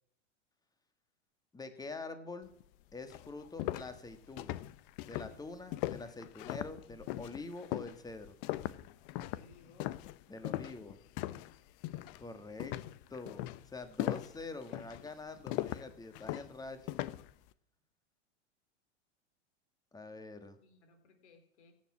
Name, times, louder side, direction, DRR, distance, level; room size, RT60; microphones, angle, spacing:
voice 1, 1.5-2.5 2.9-4.6 5.1-8.4 10.3-11.4 12.2-12.8 13.1-17.0 19.9-20.6, left 3 dB, 10° left, 9 dB, 1.7 m, -46 dB
sound 1, 2.6-2.7 3.1-11.5 11.8-12.2 12.6-17.3, left 16 dB, 50° left, 0.8 m, -39 dB
voice 2, 9.1-9.9 20.6-21.7, left 3 dB, 75° left, 6 dB, 3.7 m, -61 dB
16.5 x 7.3 x 7.4 m, 0.69 s
hypercardioid pair, 100°, 35 cm